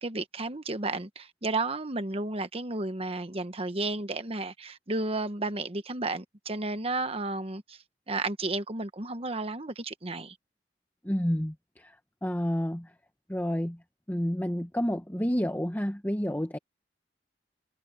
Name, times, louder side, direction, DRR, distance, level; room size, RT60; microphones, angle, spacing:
voice 1, 0.0-7.8 8.1-10.4, right 2 dB, 35° right, 1.2 m, -32 dB
voice 2, 11.0-12.9 13.3-13.8 14.1-16.6, equal, 10° left, 1.2 m, -30 dB
head